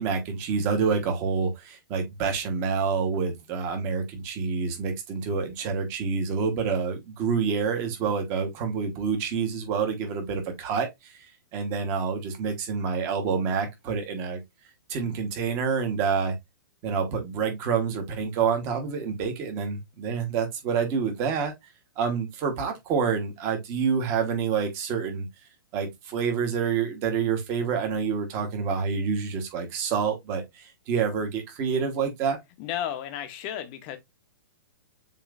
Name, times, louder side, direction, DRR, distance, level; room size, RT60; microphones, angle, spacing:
voice 1, 0.0-14.4 14.9-16.3 16.8-21.5 22.0-25.3 25.7-32.4, right 6 dB, 25° right, 1.1 m, -27 dB
voice 2, 32.6-34.0, left 10 dB, 25° left, 0.7 m, -33 dB
7.1 x 3.0 x 2.4 m
hypercardioid pair, 175°, 11 cm